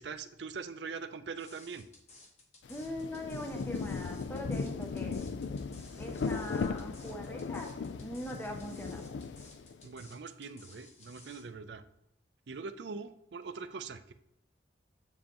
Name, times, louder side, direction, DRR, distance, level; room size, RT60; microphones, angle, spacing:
voice 1, 0.0-1.9 9.8-11.8 12.5-14.1, right 5 dB, 75° right, 10 dB, 0.5 m, -42 dB
sound 1, 1.4-11.4, left 2 dB, 35° left, 1.3 m, -56 dB
Rain, 2.6-9.9, left 4 dB, 80° left, 0.4 m, -37 dB
voice 2, 2.7-5.2 6.0-7.7 8.0-9.0, left 1 dB, 10° left, 2 dB, 0.5 m, -41 dB
7.6 x 7.3 x 3.0 m, 0.79 s
head